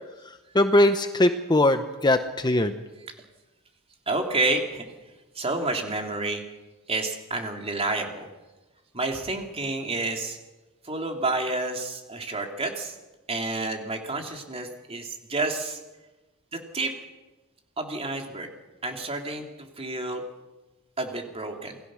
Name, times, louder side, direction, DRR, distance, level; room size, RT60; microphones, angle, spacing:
voice 1, 0.5-2.8, left 1 dB, 20° left, 8 dB, 0.9 m, -21 dB
voice 2, 4.1-4.8 5.3-6.4 6.9-8.3 8.9-10.4 10.8-13.0 13.3-15.8 16.5-16.9 17.8-18.5 18.8-20.2 21.0-21.8, right 2 dB, 25° right, 3 dB, 3.2 m, -29 dB
28.0 x 19.5 x 6.4 m, 1.1 s
head